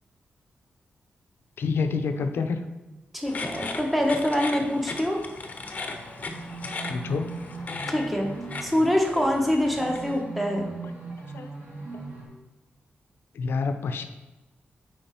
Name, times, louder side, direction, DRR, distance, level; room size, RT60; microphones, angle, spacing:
voice 1, 1.6-2.6 6.9-7.3 11.3-11.5 13.3-14.1, left 4 dB, 75° left, 7 dB, 0.6 m, -27 dB
voice 2, 3.1-5.2 7.9-8.3 8.6-10.7, left 1 dB, ahead, 1 dB, 1.1 m, -25 dB
sound 1, 3.3-10.2, left 3 dB, 40° left, 0.8 m, -37 dB
sound 2, 5.7-12.2, right 3 dB, 55° right, 2.5 m, -40 dB
8.7 x 4.8 x 4.4 m, 1.1 s
wide cardioid pair, 155°, 4 cm